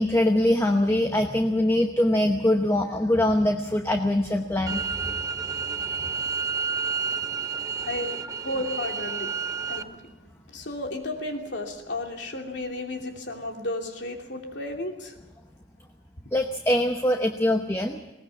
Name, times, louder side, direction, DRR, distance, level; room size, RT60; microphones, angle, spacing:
voice 1, 0.0-4.8 16.3-18.0, left 1 dB, 15° left, 5 dB, 0.9 m, -23 dB
sound 1, 4.7-9.8, right 5 dB, 20° right, 0.7 m, -30 dB
voice 2, 7.8-9.4 9.7-15.2, left 1 dB, 65° left, 2 dB, 2.9 m, -34 dB
20.0 x 18.5 x 7.2 m, 1.0 s
head